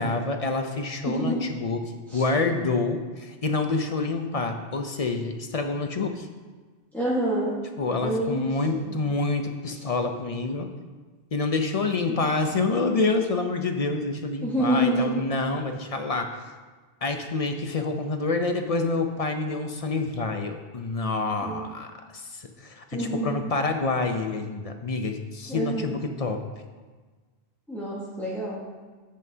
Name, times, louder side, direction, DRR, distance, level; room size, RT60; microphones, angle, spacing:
voice 1, 0.0-6.3 7.8-10.7 11.3-16.3 17.0-26.4, left 3 dB, 40° left, 5 dB, 0.6 m, -27 dB
voice 2, 1.0-1.4 2.1-2.2 6.9-7.5 8.0-8.9 14.4-15.1 21.4-21.6 22.9-23.4 25.5-25.9 27.7-28.6, right 1 dB, ahead, -7 dB, 1.4 m, -27 dB
10.5 x 8.5 x 2.8 m, 1.4 s
omnidirectional pair, 1.1 m